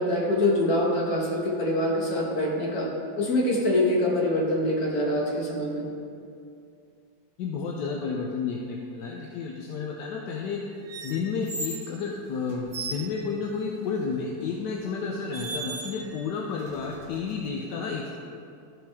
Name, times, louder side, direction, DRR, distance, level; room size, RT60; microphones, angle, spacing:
voice 1, 0.0-2.9 3.2-5.9, left 1 dB, 50° left, -3 dB, 1.8 m, -25 dB
voice 2, 7.4-10.6 11.0-18.1, left 5 dB, 70° left, -1 dB, 1.1 m, -31 dB
sound 1, 10.9-11.9 12.5-13.1 14.4-14.6 15.3-16.2 16.6-17.5, right 3 dB, 70° right, 1.6 m, -37 dB
13.0 x 5.1 x 3.5 m, 2.5 s
omnidirectional pair, 2.2 m